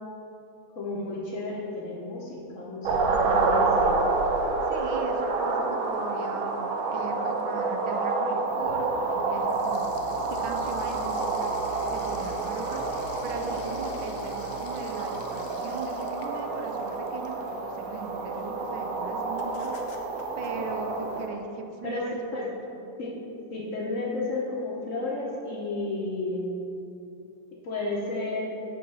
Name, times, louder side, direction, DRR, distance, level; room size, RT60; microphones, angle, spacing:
voice 1, 0.8-4.0 21.8-22.0 22.3-22.5 23.0-23.1 23.5-26.6 27.6-28.5, left 2 dB, 55° left, -3 dB, 1.0 m, -32 dB
sound 1, 2.8-21.3, right 3 dB, 65° right, 0.8 m, -28 dB
voice 2, 4.7-11.6 11.9-22.6, right 4 dB, 85° right, 5 dB, 1.4 m, -39 dB
sound 2, 8.4-21.3, left 2 dB, 75° left, 0.7 m, -46 dB
7.6 x 3.8 x 5.4 m, 2.7 s
omnidirectional pair, 2.0 m